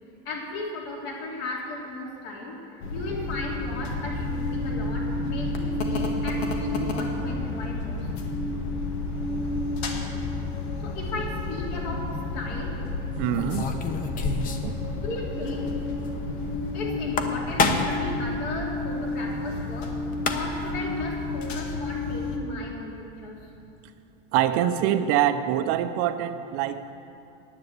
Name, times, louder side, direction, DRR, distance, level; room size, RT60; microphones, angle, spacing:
voice 1, 0.2-2.6 2.9-8.1 10.8-12.8 15.0-15.8 16.7-20.0 20.3-23.6, left 2 dB, 65° left, -2 dB, 3.3 m, -36 dB
sound 1, 2.8-22.4, left 2 dB, 90° left, 1.9 m, -30 dB
sound 2, 11.5-11.8 13.3-14.8 15.0-15.1 15.4-15.5 16.9-18.1 19.8-19.9 20.1-20.7, left 3 dB, 25° left, 0.9 m, -27 dB
voice 2, 13.2-13.6 14.6-14.7 24.3-26.9, right 11 dB, 50° right, 10 dB, 0.7 m, -24 dB
10.0 x 9.6 x 8.1 m, 2.7 s
supercardioid pair, 150°, 31 cm